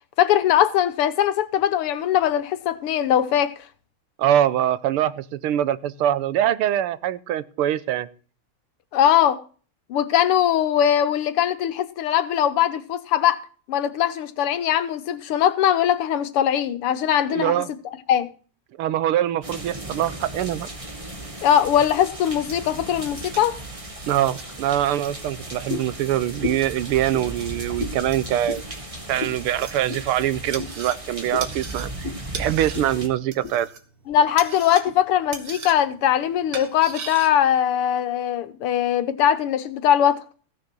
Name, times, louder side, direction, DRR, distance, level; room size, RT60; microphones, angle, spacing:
voice 1, 0.2-3.5 8.9-9.4 9.9-13.4 13.7-17.6 18.1-18.3 21.4-23.6 34.1-40.2, left 10 dB, 90° left, 2.0 m, -21 dB
voice 2, 4.2-8.1 17.3-17.7 18.8-20.7 24.1-28.6 29.1-32.1 32.3-33.7, right 12 dB, 85° right, 1.7 m, -23 dB
sound 1, 19.3-37.3, right 6 dB, 55° right, 2.0 m, -41 dB
sound 2, 19.4-33.1, right 1 dB, 15° right, 1.7 m, -36 dB
sound 3, 25.7-26.0 26.4-26.7 27.1-27.3 27.8-28.0 28.4-28.6 29.2-29.4 29.9-30.1 30.6-30.7 31.3-31.5 32.0-32.2 32.7-32.9 33.2-33.6 34.1-34.2 34.8-35.0, left 5 dB, 45° left, 2.1 m, -32 dB
15.5 x 6.7 x 6.1 m
omnidirectional pair, 2.4 m